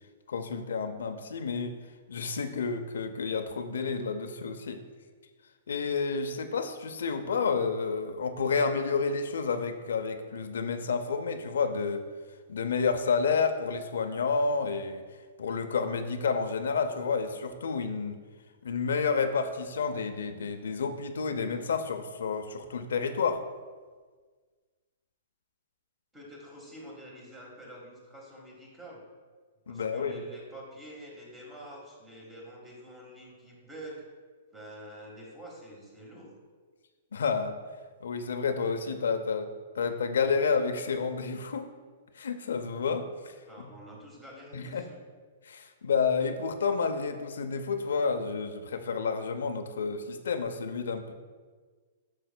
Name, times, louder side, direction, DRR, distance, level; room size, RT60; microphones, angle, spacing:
voice 1, 0.3-1.8 2.1-4.8 5.7-12.0 12.5-15.0 15.4-18.2 18.6-23.4 29.7-30.2 37.1-37.6 38.0-39.5 39.7-41.7 42.2-43.7 44.5-44.9 45.4-51.1, left 5 dB, 85° left, 6 dB, 0.5 m, -30 dB
voice 2, 26.1-29.0 29.7-34.0 34.5-36.3 43.4-45.0, equal, 10° right, -2 dB, 1.4 m, -47 dB
7.8 x 6.3 x 2.2 m, 1.5 s
hypercardioid pair, 150°, 0 cm